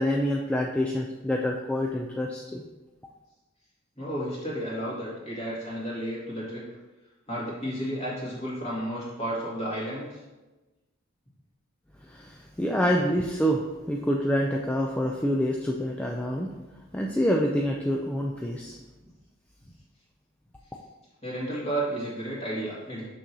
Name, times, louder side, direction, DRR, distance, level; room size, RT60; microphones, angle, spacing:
voice 1, 0.0-2.6 12.1-16.5 16.9-18.8, equal, 5° left, 0 dB, 0.3 m, -27 dB
voice 2, 4.0-6.6 7.3-10.2 21.2-23.1, right 1 dB, 30° left, -6 dB, 2.0 m, -32 dB
6.3 x 6.0 x 2.8 m, 1.1 s
head